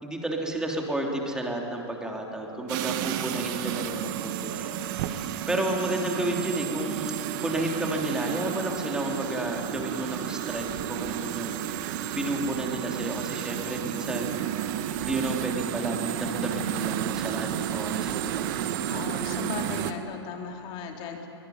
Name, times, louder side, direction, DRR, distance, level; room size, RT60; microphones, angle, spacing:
voice 1, 0.0-14.3 15.0-18.5, right 1 dB, 5° right, 0 dB, 3.3 m, -32 dB
sound 1, 2.7-19.9, right 10 dB, 45° right, 1.4 m, -31 dB
voice 2, 18.9-21.3, left 6 dB, 35° left, 3 dB, 3.1 m, -37 dB
24.0 x 19.5 x 9.5 m, 2.8 s
hypercardioid pair, 130°, 15 cm